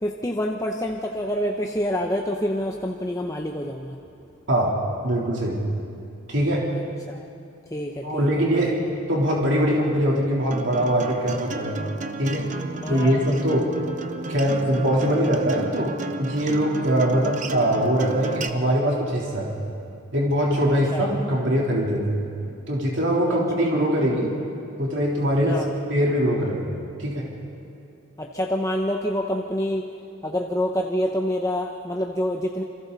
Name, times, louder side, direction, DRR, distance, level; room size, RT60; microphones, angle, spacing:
voice 1, 0.0-4.0 6.7-6.8 7.1-7.2 7.7-8.3 12.8-13.2 20.9-21.1 23.3-23.4 25.5-25.7 28.2-29.9 30.2-32.6, equal, 15° left, 1 dB, 0.9 m, -27 dB
voice 2, 5.0-5.6 6.3-6.6 8.0-8.8 9.1-11.8 12.2-12.5 12.9-13.7 14.3-19.5 20.1-22.2 22.7-24.3 24.8-25.6 25.9-26.7 27.0-27.3, equal, 55° right, -3 dB, 3.6 m, -22 dB
Acoustic guitar, 10.5-18.5, right 3 dB, 35° right, 0.9 m, -33 dB
28.5 x 26.0 x 4.1 m, 2.5 s
head